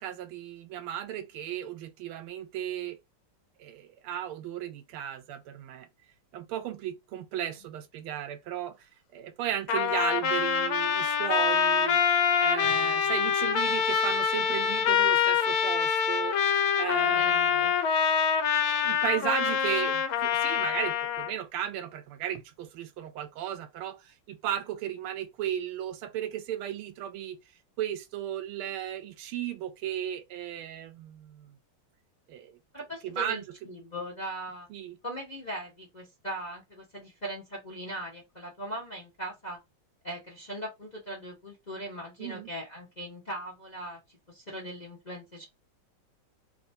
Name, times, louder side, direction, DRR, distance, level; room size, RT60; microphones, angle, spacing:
voice 1, 0.0-3.0 3.6-5.9 6.3-8.8 9.1-12.0 12.4-16.4 16.8-17.7 18.8-27.4 27.8-31.6 32.3-32.6 33.0-33.4 34.7-35.0 42.2-42.5, right 11 dB, 90° right, 1.5 m, -35 dB
Trumpet, 9.7-21.3, left 7 dB, 80° left, 1.5 m, -25 dB
voice 2, 17.0-17.7 32.7-34.7 35.0-39.6 40.0-44.0 44.3-45.5, right 1 dB, 30° left, 0.8 m, -39 dB
3.2 x 3.1 x 2.7 m
omnidirectional pair, 2.3 m